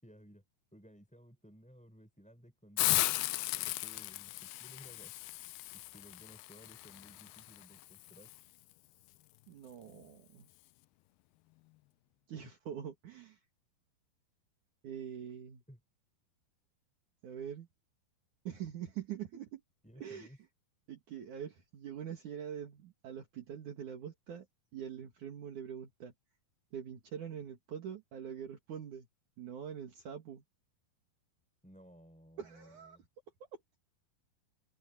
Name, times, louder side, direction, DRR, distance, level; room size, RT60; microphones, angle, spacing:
voice 1, 0.0-0.4 0.7-3.2 3.5-5.2 5.7-8.3 12.4-12.5 15.7-15.8 19.8-20.4 31.6-33.0, equal, ahead, 5.6 m, -57 dB
Hiss, 2.8-8.4, left 20 dB, 90° left, 2.5 m, -36 dB
voice 2, 9.5-10.5 12.3-13.4 14.8-15.6 17.2-17.7 18.4-19.6 20.0-20.3 20.9-24.5 24.7-26.1 26.7-29.1 29.4-30.4 32.4-33.0, right 9 dB, 60° right, 3.4 m, -44 dB
open air
omnidirectional pair, 4.3 m